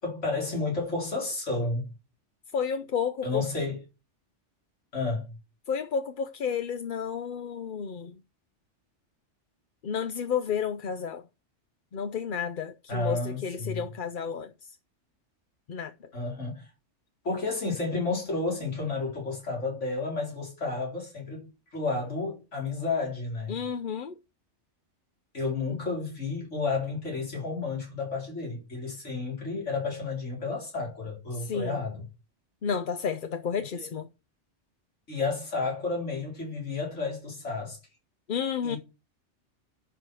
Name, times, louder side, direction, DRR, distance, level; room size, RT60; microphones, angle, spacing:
voice 1, 0.0-1.9 3.2-3.8 4.9-5.2 12.9-13.8 16.1-16.7 17.2-23.5 25.3-32.0 33.8-33.9 35.1-37.8 38.6-38.8, left 3 dB, 80° left, 4.4 m, -31 dB
voice 2, 2.5-3.5 5.7-8.1 9.8-11.2 11.9-14.8 15.7-16.1 23.5-24.1 31.3-31.8 32.6-34.1 38.3-38.8, left 7 dB, 50° left, 0.7 m, -31 dB
11.0 x 4.9 x 6.1 m
omnidirectional pair, 1.2 m